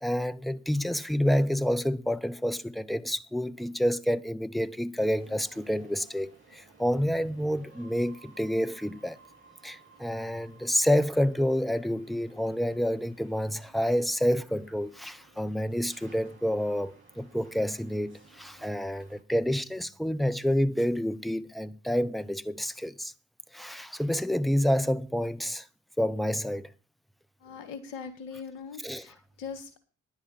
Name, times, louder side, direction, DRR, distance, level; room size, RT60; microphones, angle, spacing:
voice 1, 0.0-9.2 9.6-23.1 23.5-25.7 26.0-26.7 28.8-29.0, equal, ahead, 0.9 m, -28 dB
sound 1, 5.0-19.2, right 4 dB, 35° right, 6.7 m, -57 dB
voice 2, 27.4-29.8, left 6 dB, 75° left, 1.7 m, -41 dB
11.5 x 10.5 x 4.5 m
figure-of-eight pair, 40°, 36 cm